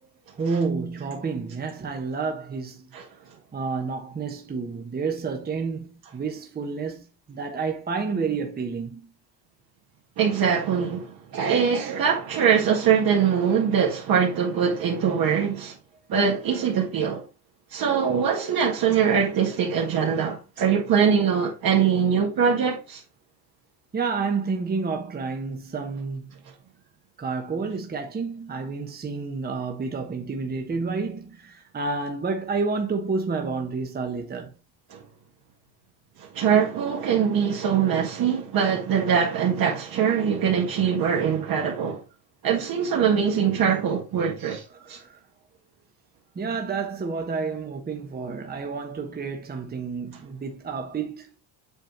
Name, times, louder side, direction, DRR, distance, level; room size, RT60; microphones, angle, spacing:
voice 1, 0.4-2.9 3.5-9.1 23.9-26.3 27.2-34.5 44.7-45.2 46.3-51.4, right 4 dB, 20° right, 1.2 m, -30 dB
voice 2, 10.2-15.8 16.1-17.2 17.7-23.0 34.9-35.0 36.2-42.0 42.4-45.0, right 7 dB, 50° right, 1.7 m, -23 dB
8.2 x 4.3 x 3.1 m
cardioid pair, 140°, 44 cm